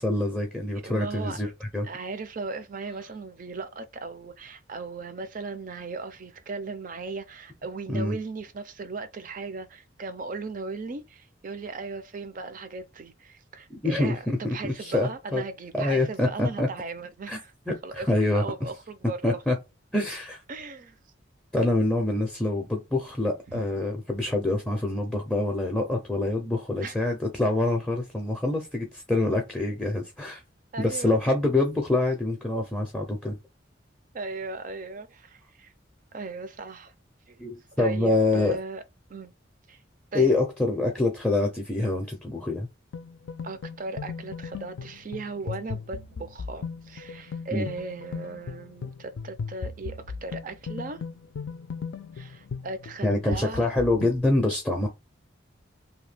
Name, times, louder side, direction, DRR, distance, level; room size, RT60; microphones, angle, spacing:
voice 1, 0.0-1.5 1.7-1.9 7.9-8.2 13.7-15.4 15.7-16.7 17.3-17.4 17.7-18.7 19.2-19.6 19.9-20.4 21.5-30.4 30.8-33.4 37.4-38.6 40.1-42.7 47.5-47.7 53.0-54.9, left 2 dB, 5° left, 0.5 m, -26 dB
voice 2, 0.8-1.4 1.8-17.5 17.8-19.4 20.5-21.0 23.5-23.6 26.8-27.0 30.7-31.1 34.1-35.7 36.1-36.9 37.3-37.4 37.8-38.8 39.1-39.3 39.7-39.8 40.1-40.4 43.4-51.1 52.1-53.7, right 3 dB, 45° right, 0.5 m, -37 dB
sound 1, 42.9-54.2, left 5 dB, 70° left, 0.4 m, -37 dB
2.8 x 2.2 x 3.3 m
head